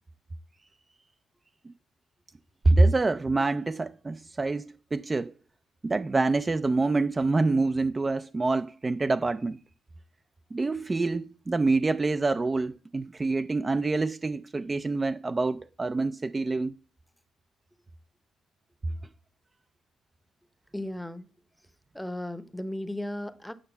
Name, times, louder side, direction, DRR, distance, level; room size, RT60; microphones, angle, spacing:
voice 1, 2.7-5.3 5.8-9.6 10.5-16.7, right 3 dB, 25° right, 0.4 m, -26 dB
voice 2, 20.7-21.3 21.9-23.5, left 1 dB, 5° left, 0.8 m, -35 dB
8.8 x 6.5 x 6.9 m
cardioid pair, 90°, 0 cm